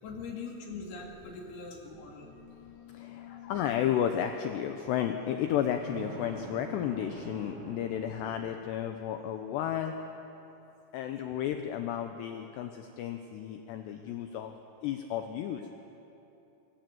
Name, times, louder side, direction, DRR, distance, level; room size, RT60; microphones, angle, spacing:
voice 1, 0.0-2.3 3.2-3.5, left 4 dB, 55° left, 0 dB, 3.8 m, -42 dB
sound 1, 0.9-4.0 5.5-8.6, right 5 dB, 70° right, 2.3 m, -47 dB
voice 2, 2.0-9.9 10.9-14.5 14.8-15.6, left 10 dB, 85° left, 6 dB, 2.4 m, -33 dB
23.0 x 17.0 x 7.9 m, 2.9 s
omnidirectional pair, 5.9 m